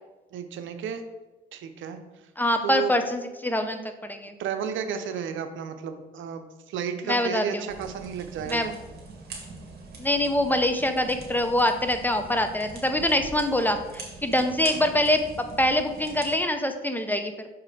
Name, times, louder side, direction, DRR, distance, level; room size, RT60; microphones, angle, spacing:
voice 1, 0.3-1.0 1.5-2.0 2.6-2.9 4.4-8.7 14.6-14.8, right 8 dB, 75° right, 8 dB, 0.8 m, -32 dB
voice 2, 2.4-4.3 7.0-7.7 8.5-8.7 10.0-17.3, left 1 dB, 10° left, 7 dB, 0.7 m, -25 dB
sound 1, 7.7-16.3, right 3 dB, 55° right, 2.1 m, -43 dB
6.4 x 4.8 x 4.9 m, 1.1 s
cardioid pair, 90°, 20 cm